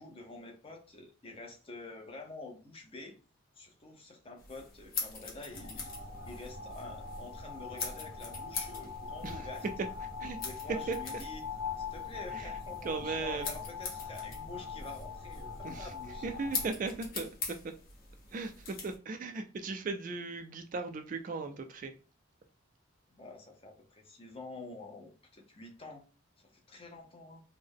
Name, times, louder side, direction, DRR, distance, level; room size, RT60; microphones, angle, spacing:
voice 1, 0.0-3.2 3.6-5.9 6.2-9.7 10.3-11.5 11.8-16.3 23.1-26.0 26.4-27.4, left 3 dB, 30° left, 0.7 m, -48 dB
sound 1, 4.4-19.0, left 4 dB, 45° left, 1.0 m, -44 dB
sound 2, 5.5-16.7, left 5 dB, 90° left, 0.9 m, -42 dB
voice 2, 12.8-13.5 15.6-15.9 16.2-17.6 18.3-21.9, right 4 dB, 40° right, 0.3 m, -37 dB
3.4 x 2.1 x 3.6 m
head